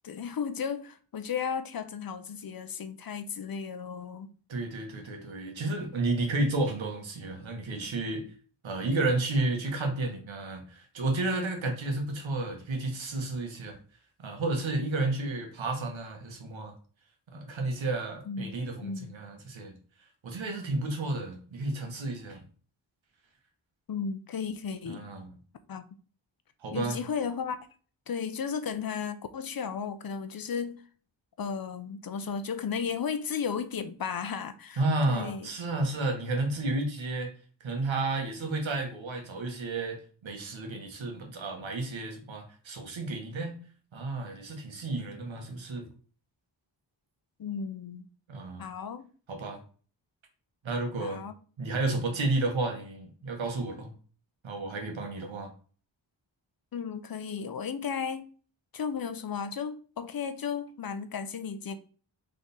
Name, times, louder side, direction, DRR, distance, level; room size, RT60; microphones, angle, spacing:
voice 1, 0.0-4.3 18.3-18.5 18.8-19.1 23.9-25.1 25.7-25.9 26.7-27.6 28.1-30.8 31.4-34.8 35.1-35.5 47.4-48.1 48.6-49.1 51.0-51.3 56.7-58.3 58.7-61.8, left 6 dB, 50° left, 0.6 m, -34 dB
voice 2, 4.5-8.2 8.6-13.8 14.2-16.7 17.3-19.7 20.2-22.4 24.9-25.3 26.6-27.0 34.8-37.3 37.6-43.5 43.9-45.9 48.3-48.6 49.3-49.6 50.6-51.2 51.6-53.9 54.4-55.5, right 2 dB, 85° right, 1.2 m, -32 dB
3.6 x 3.3 x 4.0 m
wide cardioid pair, 70°, 45 cm